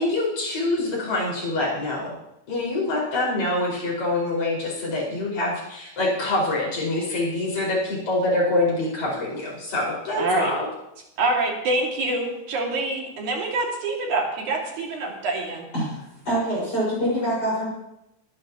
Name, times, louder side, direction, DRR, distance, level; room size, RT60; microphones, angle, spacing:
voice 1, 0.0-2.1 2.5-10.7, left 2 dB, 65° left, -5 dB, 6.6 m, -25 dB
voice 2, 10.2-10.5 11.2-15.6, right 2 dB, 70° right, -1 dB, 3.8 m, -25 dB
voice 3, 16.3-17.7, right 1 dB, 30° left, -6 dB, 5.8 m, -24 dB
22.5 x 10.0 x 3.0 m, 0.88 s
omnidirectional pair, 3.5 m